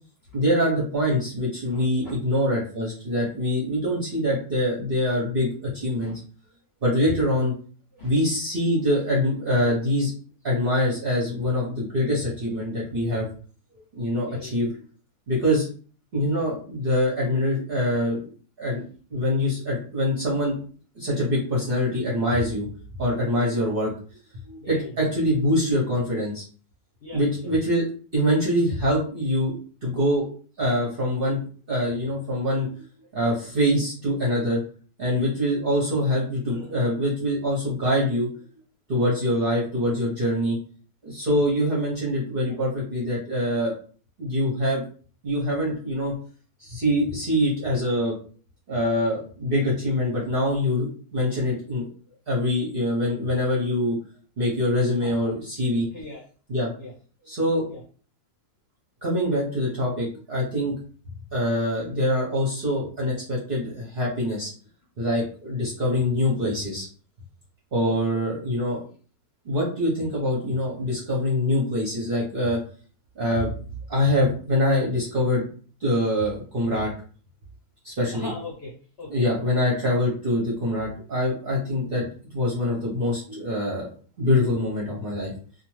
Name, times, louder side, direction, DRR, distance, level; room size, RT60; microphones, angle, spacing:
voice 1, 0.3-6.1 6.8-7.5 8.0-10.1 10.4-13.3 14.0-14.7 15.3-15.7 16.1-18.3 18.6-18.8 19.1-20.6 21.0-22.7 23.0-23.9 24.5-26.4 27.1-27.8 28.1-29.5 29.8-30.3 30.6-31.4 31.7-32.7 33.1-34.6 35.0-38.3 38.9-40.6 41.0-43.7 44.2-44.8 45.2-46.1 46.6-48.1 48.7-51.8 52.3-54.0 54.4-55.9 56.5-56.7 57.3-57.6 59.0-60.7 61.3-64.5 65.0-66.9 67.7-68.8 69.4-72.6 73.2-73.5 73.9-75.4 75.8-76.9 77.8-78.3 79.1-82.1 82.3-83.9 84.2-85.3, left 1 dB, 45° right, -4 dB, 0.8 m, -24 dB
voice 2, 1.7-2.1 6.0-6.2 7.0-7.2 8.0-8.1 14.2-14.6 23.5-23.6 24.6-25.1 27.0-27.5 42.4-42.6 52.1-52.2 55.0-55.3 55.9-56.2 56.8-56.9 57.7-57.8 67.8-68.0 78.1-79.2, left 2 dB, 55° left, -3 dB, 0.7 m, -40 dB
2.5 x 2.3 x 3.0 m, 0.41 s
omnidirectional pair, 1.7 m